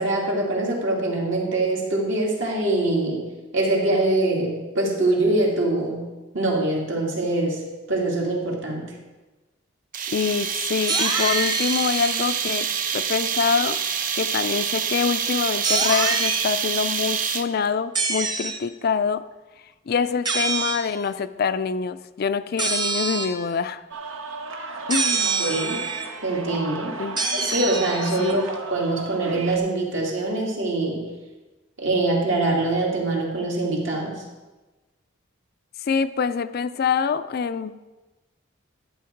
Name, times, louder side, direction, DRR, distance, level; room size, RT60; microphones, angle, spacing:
voice 1, 0.0-3.2 3.5-6.0 6.3-7.6 7.9-8.8 25.4-25.8 26.2-27.0 27.3-31.1 31.8-34.2, right 2 dB, 70° right, -2 dB, 2.6 m, -23 dB
sound 1, 9.9-17.7, right 7 dB, 45° right, 0.6 m, -26 dB
voice 2, 10.1-12.7 12.9-13.8 14.2-19.3 19.9-23.8 24.9-25.5 27.0-27.2 28.2-28.4 35.9-37.9, left 5 dB, 50° left, 12 dB, 0.4 m, -25 dB
sound 2, 10.9-12.8 15.6-16.5 17.9-18.6 20.2-20.9 22.6-23.4 24.9-26.1 27.2-28.4, right 4 dB, 20° right, 1.0 m, -26 dB
sound 3, 23.9-29.6, right 3 dB, 85° right, 1.1 m, -35 dB
12.0 x 7.9 x 4.6 m, 1.2 s
head